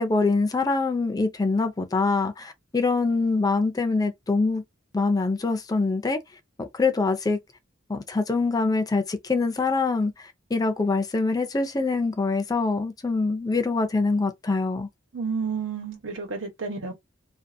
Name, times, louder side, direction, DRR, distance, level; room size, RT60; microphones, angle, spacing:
voice 1, 0.0-4.6 4.9-6.2 6.6-7.4 7.9-14.9, left 3 dB, 20° left, 0.4 m, -24 dB
voice 2, 15.1-16.9, right 5 dB, 80° right, 1.2 m, -30 dB
2.6 x 2.5 x 2.6 m
head